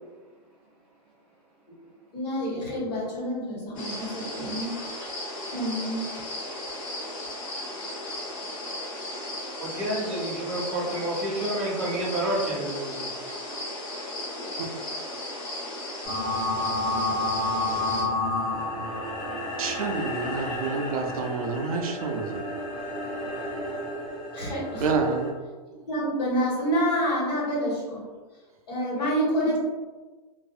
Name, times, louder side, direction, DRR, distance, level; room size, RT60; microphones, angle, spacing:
voice 1, 2.1-4.8 5.5-6.1 24.3-24.9 25.9-28.0 28.7-29.6, equal, 70° left, -6 dB, 1.5 m, -28 dB
sound 1, 3.7-18.0, left 1 dB, 50° left, 1.0 m, -35 dB
voice 2, 9.6-13.1, right 1 dB, ahead, -13 dB, 1.2 m, -29 dB
sound 2, 16.0-25.3, left 1 dB, 20° left, 1.2 m, -31 dB
voice 3, 19.6-22.4 24.8-25.3, right 4 dB, 60° right, 3 dB, 0.4 m, -28 dB
2.6 x 2.5 x 2.3 m, 1.3 s
supercardioid pair, 180°, 21 cm